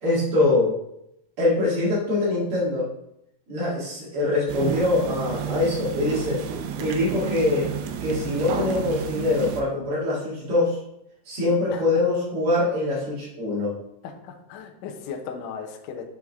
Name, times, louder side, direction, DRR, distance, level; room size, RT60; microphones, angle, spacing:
voice 1, 0.0-0.7 1.4-2.9 3.5-6.4 6.8-7.7 8.0-10.7 11.3-13.7, left 2 dB, 45° right, -6 dB, 2.0 m, -23 dB
sound 1, 4.5-9.6, right 8 dB, 80° right, 2.3 m, -31 dB
voice 2, 14.2-16.0, left 6 dB, 90° left, 2 dB, 1.8 m, -36 dB
6.9 x 4.9 x 3.5 m, 0.82 s
omnidirectional pair, 4.9 m